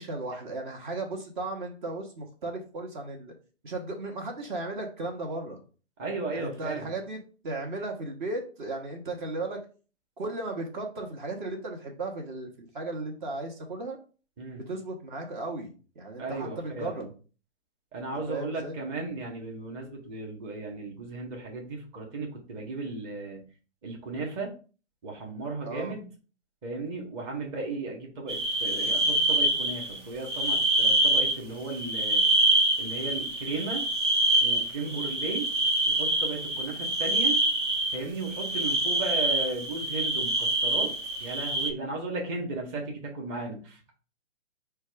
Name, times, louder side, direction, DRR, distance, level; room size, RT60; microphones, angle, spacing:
voice 1, 0.0-3.3 3.6-5.6 6.3-9.6 10.2-14.0 14.5-17.1 18.3-18.7 25.6-25.9 27.2-27.5 34.8-35.0, right 2 dB, 45° right, 2 dB, 1.0 m, -36 dB
voice 2, 6.0-6.9 14.4-14.6 16.2-17.1 17.9-23.4 23.8-24.5 25.0-26.0 26.6-32.2 32.8-33.8 34.4-35.5 35.9-37.4 37.9-40.9 41.2-43.9, right 3 dB, 25° right, 0 dB, 1.0 m, -35 dB
sound 1, 28.3-30.0 30.3-31.4 31.6-41.7, right 1 dB, 85° right, 1.1 m, -26 dB
4.5 x 2.3 x 4.7 m, 0.37 s
hypercardioid pair, 140°, 35 cm